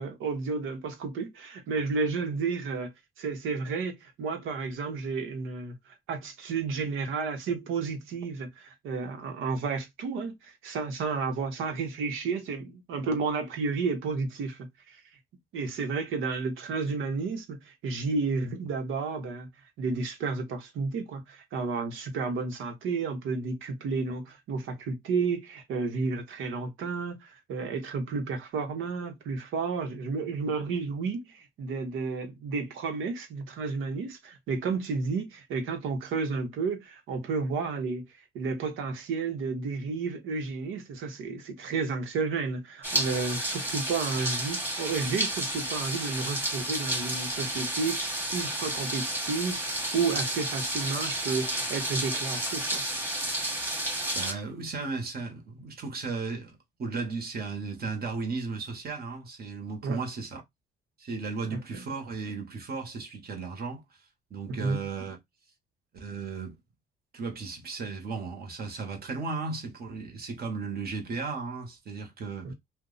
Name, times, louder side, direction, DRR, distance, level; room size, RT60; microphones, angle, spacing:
voice 1, 0.0-2.9 3.2-15.0 15.5-19.5 19.8-38.0 38.3-52.8 59.8-60.0 61.5-61.6 64.5-64.8 72.4-72.5, right 4 dB, 85° right, 1.0 m, -32 dB
sound 1, 42.8-54.3, right 1 dB, 10° right, 1.2 m, -31 dB
voice 2, 54.1-60.4 61.0-63.8 64.3-65.2 65.9-66.5 67.1-72.5, right 4 dB, 50° right, 1.2 m, -35 dB
2.7 x 2.2 x 3.8 m
cardioid pair, 90°, 20 cm